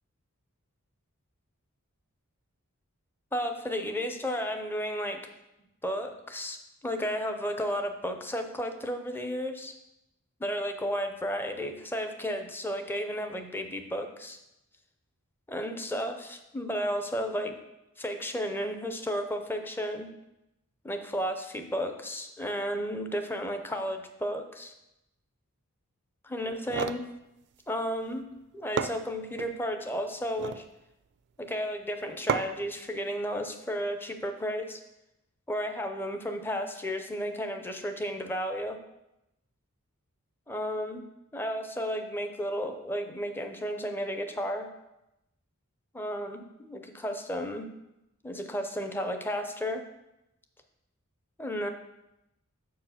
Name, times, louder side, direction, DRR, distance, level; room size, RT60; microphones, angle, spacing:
voice 1, 3.3-5.2 5.8-6.6 6.8-9.7 10.4-14.4 15.5-17.6 18.0-20.1 20.8-24.7 26.2-27.0 27.7-28.3 28.5-30.6 31.4-34.8 35.5-38.8 40.5-41.0 41.3-44.7 45.9-47.7 48.2-49.8 51.4-51.7, equal, 10° left, 6 dB, 0.6 m, -33 dB
sound 1, 26.5-27.1 28.3-28.4 28.8-29.5 30.2-30.7 32.3-32.7, right 6 dB, 50° right, 0.4 m, -32 dB
6.7 x 4.7 x 5.7 m, 0.90 s
head